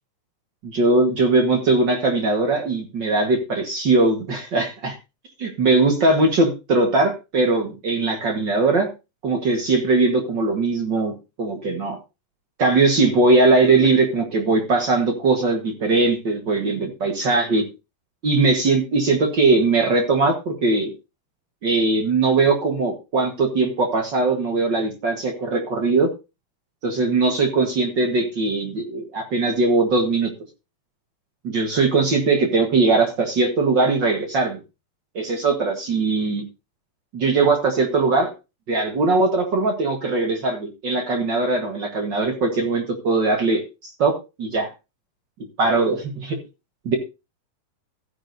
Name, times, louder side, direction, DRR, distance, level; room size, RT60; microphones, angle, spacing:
voice 1, 0.6-5.0 5.4-8.9 9.2-11.1 11.4-12.0 12.6-17.6 18.2-20.9 21.6-26.1 26.8-30.3 31.4-34.6 35.1-36.4 37.1-38.3 38.7-44.1 44.4-44.7 45.6-46.4 46.8-46.9, right 3 dB, 55° right, 3 dB, 1.2 m, -20 dB
14.5 x 9.9 x 2.6 m, 0.28 s
omnidirectional pair, 4.1 m